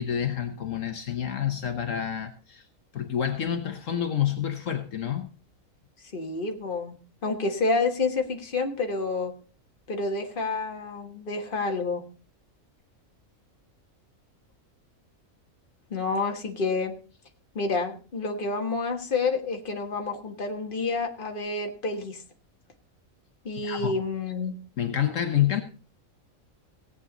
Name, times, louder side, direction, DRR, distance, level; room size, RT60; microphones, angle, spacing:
voice 1, 0.0-2.6 2.9-5.3 23.6-23.9 24.8-25.6, left 10 dB, 70° left, 1.4 m, -28 dB
voice 2, 6.1-7.0 7.2-9.3 9.9-12.0 15.9-16.9 17.5-22.2 23.4-24.6, left 3 dB, 40° left, 1.7 m, -29 dB
17.5 x 8.3 x 4.0 m
omnidirectional pair, 1.4 m